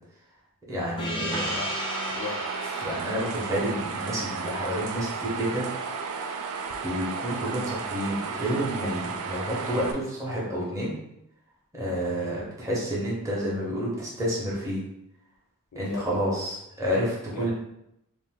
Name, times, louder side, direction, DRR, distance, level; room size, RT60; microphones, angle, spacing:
voice 1, 0.7-1.6 2.8-5.7 6.8-11.0 11.7-14.8 15.7-17.5, equal, 15° right, -6 dB, 0.7 m, -29 dB
Gong, 1.0-6.0, left 1 dB, 20° left, 0.5 m, -37 dB
voice 2, 1.3-3.0 15.7-16.2 17.3-17.5, left 4 dB, 75° left, 1 dB, 0.4 m, -39 dB
sound 1, 1.3-9.9, right 5 dB, 75° right, 0.4 m, -33 dB
2.5 x 2.5 x 3.5 m, 0.81 s
head